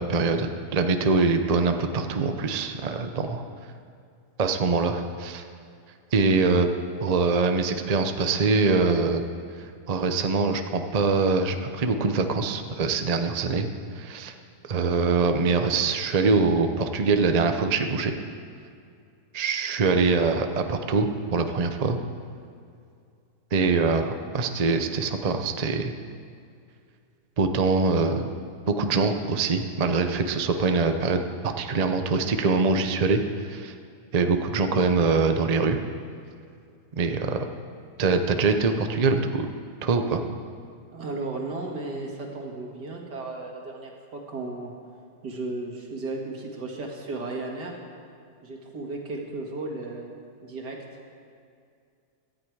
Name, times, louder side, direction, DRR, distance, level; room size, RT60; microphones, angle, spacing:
voice 1, 0.0-3.4 4.4-5.4 6.1-6.7 7.0-9.2 9.9-13.7 13.9-14.3 14.7-18.1 19.3-22.0 23.5-25.9 27.4-28.3 28.7-33.7 34.1-35.8 36.9-37.5 38.0-39.5 39.8-40.2, right 4 dB, 45° right, 6 dB, 0.5 m, -23 dB
voice 2, 40.9-44.7 45.2-47.7 48.4-50.1 50.4-50.8, right 2 dB, 70° right, 0 dB, 2.6 m, -34 dB
17.5 x 13.0 x 4.8 m, 2.4 s
omnidirectional pair, 1.8 m